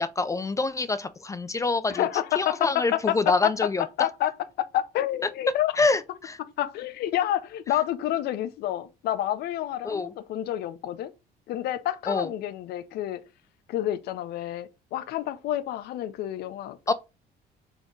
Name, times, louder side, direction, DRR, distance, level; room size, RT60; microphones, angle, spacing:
voice 1, 0.0-2.1 2.4-3.8 5.8-6.4 9.8-10.1 12.1-12.3 16.9-17.0, left 3 dB, 20° left, 0.3 m, -26 dB
voice 2, 1.9-3.5 4.0-5.7 6.4-11.1 11.5-13.2 13.7-16.9, left 12 dB, 70° left, 0.5 m, -29 dB
4.1 x 2.9 x 3.7 m
cardioid pair, 110°, 17 cm